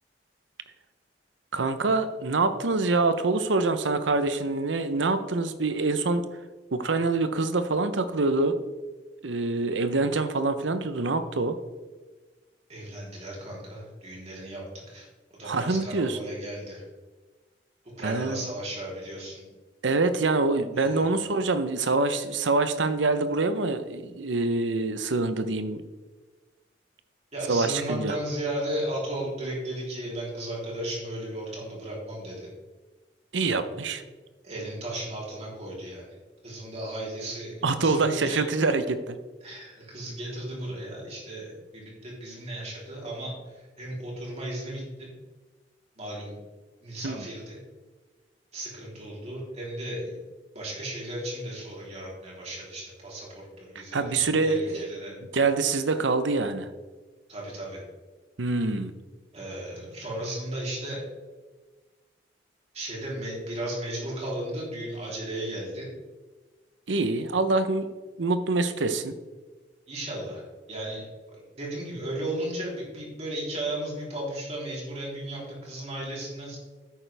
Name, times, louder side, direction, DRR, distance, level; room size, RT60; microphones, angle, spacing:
voice 1, 1.5-6.2 6.7-8.6 9.2-11.6 15.4-16.2 18.0-18.5 19.8-25.8 27.5-28.1 33.3-34.0 37.6-39.2 47.0-47.3 53.9-54.9 55.3-56.7 58.4-58.9 66.9-69.1, right 3 dB, 90° right, 10 dB, 0.8 m, -25 dB
voice 2, 12.7-15.1 15.4-16.8 18.0-19.4 20.7-21.1 27.3-32.5 34.4-36.2 36.4-38.4 39.4-45.1 46.0-46.3 46.8-47.6 48.5-50.2 50.5-55.1 57.3-57.8 59.3-61.0 62.7-65.9 69.9-71.1 71.3-76.6, right 1 dB, 35° right, -4 dB, 3.5 m, -35 dB
10.5 x 8.8 x 3.4 m, 1.3 s
head